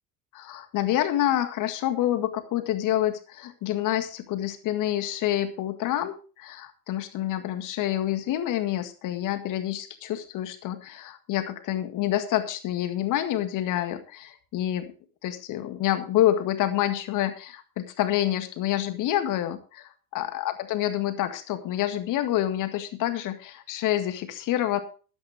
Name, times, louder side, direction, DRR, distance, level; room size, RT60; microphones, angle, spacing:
voice 1, 0.3-14.9 15.2-24.8, left 12 dB, 45° left, 9 dB, 2.0 m, -27 dB
13.0 x 12.0 x 3.4 m, 0.36 s
figure-of-eight pair, 65°, 45 cm